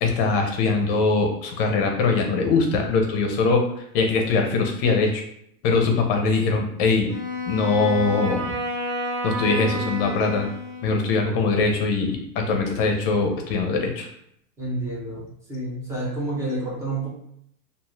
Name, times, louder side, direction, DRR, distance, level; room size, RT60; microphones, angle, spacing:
voice 1, 0.0-3.6 3.9-5.2 5.6-7.1 7.5-8.5 9.2-10.5 10.8-14.1, left 4 dB, 40° left, 3 dB, 0.6 m, -22 dB
Wind instrument woodwind instrument, 7.1-11.2, equal, 75° right, 1.2 m, -30 dB
voice 2, 14.6-17.1, right 2 dB, 5° right, -5 dB, 0.5 m, -29 dB
2.5 x 2.4 x 3.1 m, 0.72 s
supercardioid pair, 145°, 47 cm